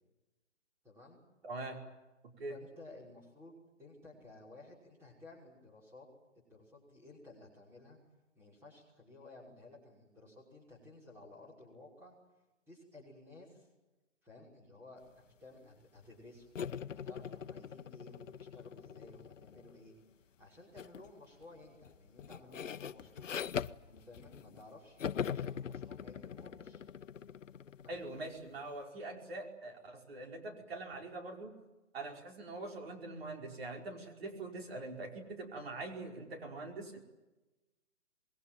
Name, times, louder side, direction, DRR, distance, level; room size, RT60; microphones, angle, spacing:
voice 1, 0.8-1.2 2.5-6.1 6.5-8.0 8.4-12.2 12.7-13.7 14.2-16.5 17.0-19.9 20.4-23.4 23.9-26.8 27.8-27.9, left 2 dB, 5° right, -3 dB, 5.9 m, -55 dB
voice 2, 1.4-1.8 2.4-2.6 27.9-31.5 31.9-37.0, right 2 dB, 50° right, 2 dB, 5.2 m, -43 dB
sound 1, 16.6-19.9 20.8-21.1 21.4-24.7 25.0-28.5, left 8 dB, 75° left, 0.9 m, -42 dB
25.5 x 22.0 x 9.3 m, 1.1 s
hypercardioid pair, 160°, 38 cm